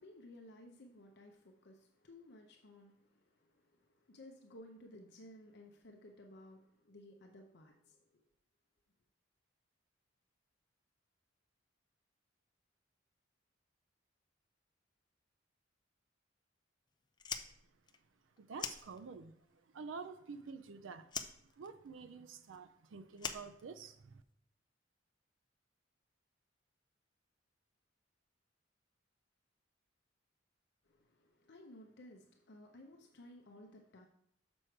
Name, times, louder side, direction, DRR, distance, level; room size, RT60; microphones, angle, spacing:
voice 1, 0.0-8.2 30.9-34.1, left 1 dB, 60° left, 0.7 m, -57 dB
Fire, 17.1-19.4 19.7-20.7 21.1-24.2, left 6 dB, 25° left, 0.4 m, -45 dB
voice 2, 18.4-19.3 19.7-21.1 21.6-24.2, right 5 dB, 90° right, 0.5 m, -48 dB
6.3 x 6.1 x 4.5 m
head